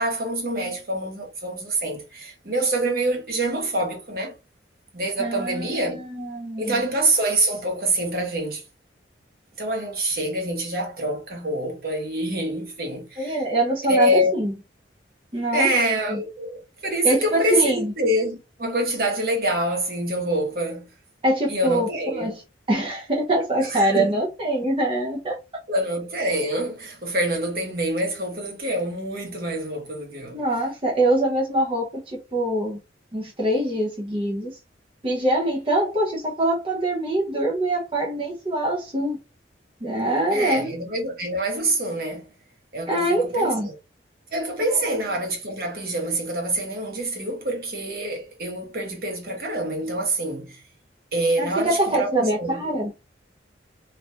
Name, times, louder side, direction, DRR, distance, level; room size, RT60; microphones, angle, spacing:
voice 1, 0.0-4.3 4.9-6.0 6.6-8.6 9.6-13.4 13.9-14.3 15.5-20.9 21.5-22.3 23.7-24.2 25.7-30.4 40.3-42.3 42.7-43.5 44.3-50.6 51.1-52.6, right 1 dB, 50° right, 0.9 m, -26 dB
voice 2, 5.2-6.8 13.2-14.5 15.3-15.8 16.1-16.2 17.0-17.9 21.2-22.4 22.7-25.4 30.3-32.8 33.1-34.6 35.0-39.2 39.8-40.7 42.9-43.7 44.7-45.0 51.4-52.9, right 1 dB, 30° right, 0.6 m, -24 dB
3.3 x 2.3 x 2.7 m
head